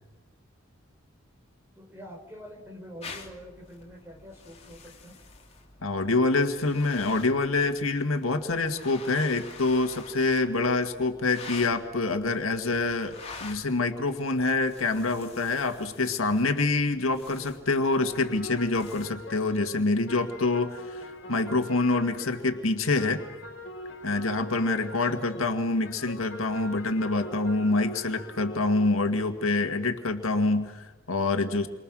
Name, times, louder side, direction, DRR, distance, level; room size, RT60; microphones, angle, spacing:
voice 1, 1.8-5.2 25.1-25.5, equal, 10° right, 2 dB, 4.8 m, -45 dB
sound 1, 3.0-19.1, left 4 dB, 30° left, 3.1 m, -48 dB
voice 2, 5.8-13.1 13.4-23.2 24.0-31.7, left 3 dB, 80° left, 6 dB, 1.9 m, -26 dB
sound 2, 18.0-22.7 23.0-29.1, left 1 dB, 60° left, 3.2 m, -43 dB
29.0 x 24.5 x 6.3 m, 1.2 s
head